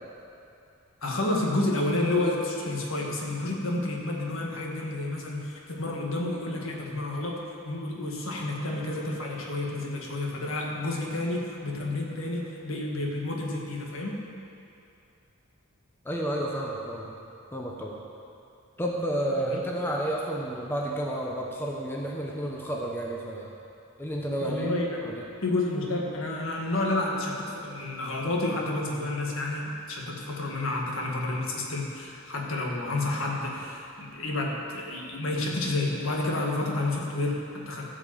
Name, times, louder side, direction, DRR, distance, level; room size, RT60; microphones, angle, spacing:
voice 1, 1.0-7.4 7.7-14.1 19.5-19.6 24.4-25.0 25.4-37.9, left 2 dB, 65° left, -1 dB, 1.8 m, -30 dB
voice 2, 16.0-17.1 17.5-18.0 18.8-23.5 24.0-24.7 25.0-25.2, right 1 dB, 10° left, -2 dB, 0.9 m, -31 dB
14.5 x 5.3 x 7.6 m, 2.6 s
head